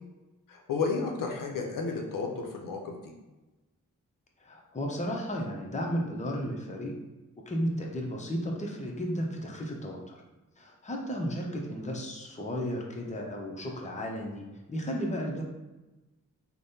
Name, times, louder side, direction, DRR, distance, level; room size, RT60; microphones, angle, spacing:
voice 1, 0.5-2.9, left 4 dB, 70° left, 1 dB, 0.6 m, -32 dB
voice 2, 4.4-6.9 7.5-10.2 10.6-15.4, equal, 20° left, 0 dB, 0.7 m, -34 dB
3.3 x 2.1 x 2.7 m, 1.1 s
cardioid pair, 45°, 34 cm